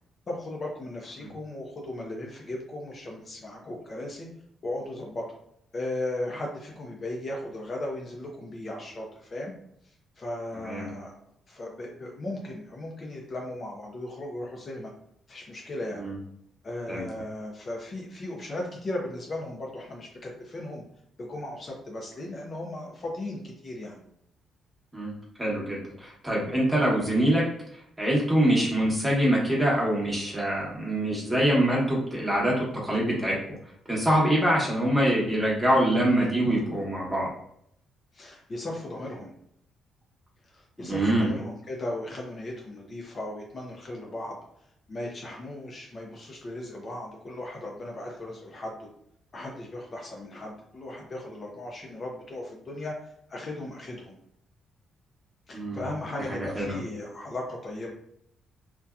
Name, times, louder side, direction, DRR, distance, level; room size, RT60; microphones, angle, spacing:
voice 1, 0.3-4.3 4.6-5.3 5.7-9.5 9.8-11.1 11.5-14.9 15.3-16.1 16.6-20.8 21.2-24.0 36.4-36.6 38.1-39.3 40.4-44.4 44.9-48.9 49.3-54.2 55.5-57.9, left 1 dB, 40° left, -1 dB, 0.5 m, -37 dB
voice 2, 25.4-27.4 28.0-33.6 33.9-37.3 40.8-41.3 55.5-55.8 56.3-56.8, right 1 dB, 10° right, -4 dB, 1.0 m, -24 dB
2.6 x 2.2 x 2.3 m, 0.71 s
cardioid pair, 90°, 0 cm